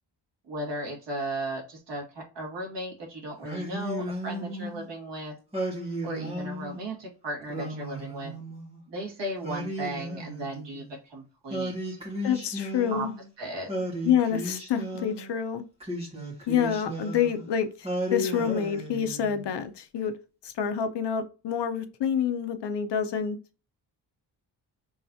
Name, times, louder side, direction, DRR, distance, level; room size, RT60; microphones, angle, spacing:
voice 1, 0.5-5.3 6.0-8.3 8.9-12.0 12.9-13.1 13.4-13.7, right 1 dB, 85° right, -1 dB, 2.3 m, -36 dB
Singing, 3.4-4.9 5.5-6.9 7.5-8.8 9.4-10.9 11.5-13.3 13.7-15.3 15.8-17.5 17.8-19.5, equal, 15° right, 1.7 m, -34 dB
voice 2, 12.2-13.1 14.0-15.6 16.5-20.1 20.4-23.4, left 8 dB, 75° left, 9 dB, 0.7 m, -27 dB
5.9 x 3.2 x 2.7 m, 0.32 s
wide cardioid pair, 170°, 42 cm